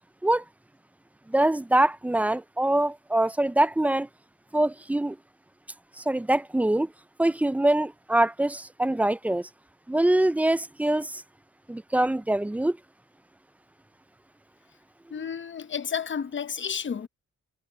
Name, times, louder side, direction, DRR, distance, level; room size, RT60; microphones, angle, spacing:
voice 1, 1.3-4.1 4.5-5.2 6.0-6.9 7.2-9.5 9.9-11.2 11.7-12.8, right 1 dB, 5° right, 0.3 m, -24 dB
voice 2, 15.1-17.1, left 7 dB, 35° left, 0.8 m, -31 dB
cardioid pair, 90°, 32 cm